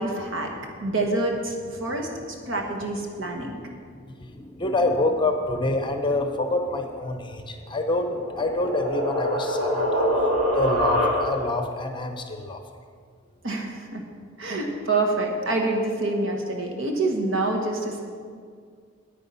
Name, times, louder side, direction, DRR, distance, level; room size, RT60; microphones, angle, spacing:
voice 1, 0.0-0.5 0.8-1.5 1.8-3.6 13.4-14.0 14.4-18.0, right 2 dB, 65° right, 1 dB, 1.5 m, -26 dB
voice 2, 0.6-0.9 1.9-2.1 3.1-3.6 4.2-10.0 10.6-12.6, left 2 dB, 25° left, 5 dB, 0.7 m, -27 dB
sound 1, 7.9-11.6, equal, 80° right, 2.4 m, -25 dB
9.3 x 8.9 x 5.6 m, 2.1 s
head